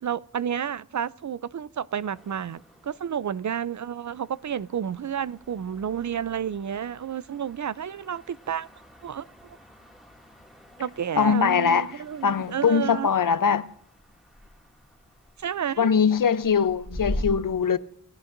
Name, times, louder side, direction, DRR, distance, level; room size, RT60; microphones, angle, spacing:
voice 1, 0.0-8.7 9.0-9.6 10.8-13.1 15.4-15.9, right 8 dB, 65° right, 0.5 m, -31 dB
sound 1, 2.1-17.2, left 1 dB, ahead, 2.3 m, -43 dB
voice 2, 11.2-11.9 12.2-13.7 15.8-17.8, left 6 dB, 85° left, 0.7 m, -22 dB
28.0 x 15.5 x 2.6 m
wide cardioid pair, 70°, 32 cm